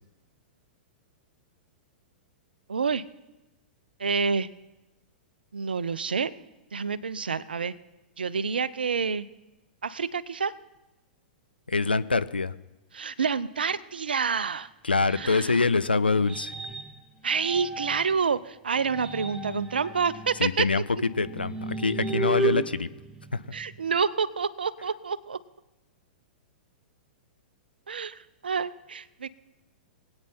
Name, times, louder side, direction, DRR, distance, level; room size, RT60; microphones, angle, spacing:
voice 1, 2.7-3.0 4.0-4.5 5.5-6.3 6.7-7.7 8.2-9.3 9.8-10.5 12.9-14.7 15.2-15.5 17.2-20.7 23.5-25.4 27.9-29.3, right 5 dB, 75° right, 18 dB, 0.5 m, -28 dB
voice 2, 11.7-12.5 14.8-16.5 20.4-20.8 21.1-22.9 23.3-23.4, left 4 dB, 85° left, 14 dB, 0.5 m, -25 dB
sound 1, 15.1-18.2 18.7-23.9, right 3 dB, 10° right, 1.1 m, -35 dB
22.0 x 8.9 x 4.3 m, 1.0 s
figure-of-eight pair, 105°, 5 cm